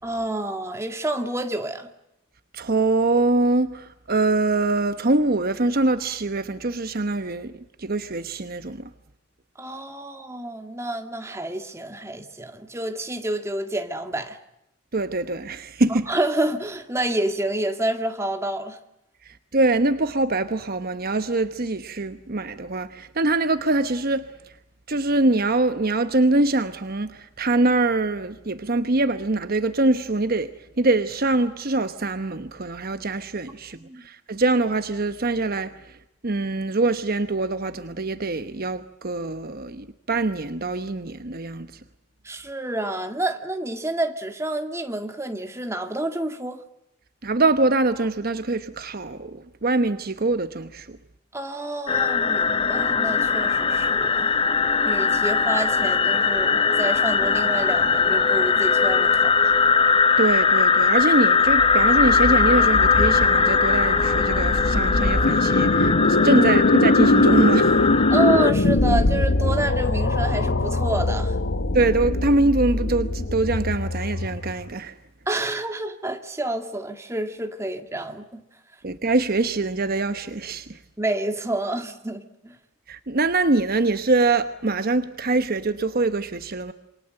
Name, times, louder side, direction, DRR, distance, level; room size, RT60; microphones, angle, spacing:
voice 1, 0.0-1.9 9.6-14.4 15.9-18.8 33.8-34.0 42.2-46.6 51.3-54.3 54.9-59.5 66.3-66.4 68.1-71.4 75.3-78.4 81.0-82.6, right 1 dB, 15° right, 1.9 m, -28 dB
voice 2, 2.5-7.5 7.8-8.9 14.9-16.1 19.2-24.3 24.9-30.5 30.8-36.0 36.2-41.7 47.2-51.0 60.2-65.9 66.2-67.8 71.7-74.9 78.8-80.8 82.9-86.7, right 2 dB, 45° right, 1.0 m, -23 dB
sound 1, 51.9-68.5, left 5 dB, 25° left, 0.9 m, -20 dB
sound 2, 61.5-74.7, left 2 dB, 60° left, 1.0 m, -22 dB
27.5 x 23.5 x 7.8 m
head